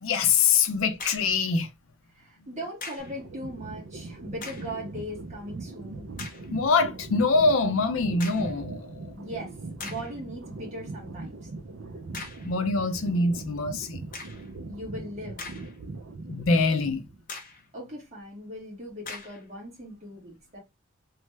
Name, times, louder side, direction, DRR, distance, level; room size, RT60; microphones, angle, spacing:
voice 1, 0.0-1.7 6.5-9.2 12.4-14.0 16.3-17.1, left 4 dB, 90° left, 0.5 m, -24 dB
sound 1, 0.9-1.4 2.8-3.2 4.3-4.8 5.4-5.5 6.2-6.5 8.2-8.6 9.3-9.4 9.8-10.2 12.1-12.5 14.1-14.5 15.1-15.9 16.3-16.4 17.3-17.7 19.0-19.4, left 4 dB, 45° left, 0.8 m, -41 dB
voice 2, 2.1-6.1 9.1-11.5 14.7-15.4 17.5-20.6, equal, 35° right, 1.4 m, -39 dB
sound 2, 3.0-17.2, right 3 dB, 65° right, 0.5 m, -40 dB
3.1 x 2.2 x 3.2 m
head